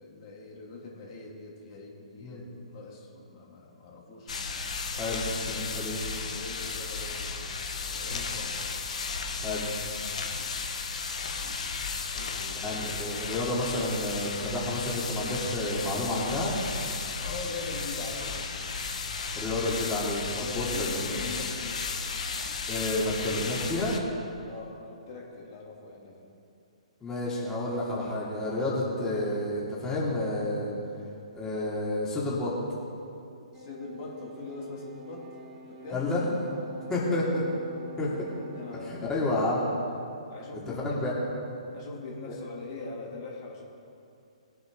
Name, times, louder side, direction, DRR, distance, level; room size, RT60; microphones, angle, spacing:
voice 1, 0.0-4.3 4.9-5.1 5.5-7.3 7.8-8.7 9.3-9.6 12.1-12.6 17.2-18.4 20.4-21.9 24.4-26.3 33.5-35.3 35.7-36.1 38.5-39.3 40.3-41.2 41.7-43.6, left 3 dB, 45° left, -3 dB, 2.8 m, -42 dB
sound 1, 4.3-24.0, left 4 dB, 70° left, 1.4 m, -34 dB
voice 2, 5.5-6.0 8.1-8.3 9.4-9.6 12.6-16.5 19.4-21.1 22.7-24.0 27.0-30.7 31.3-32.5 35.9-36.3 36.9-37.5 38.0-38.3 38.9-39.7 40.8-41.1 42.3-42.4, left 2 dB, 15° left, -6 dB, 2.8 m, -30 dB
sound 2, 33.5-39.1, equal, 15° right, 1.8 m, -47 dB
20.5 x 8.0 x 3.9 m, 2.6 s
hypercardioid pair, 135°, 4 cm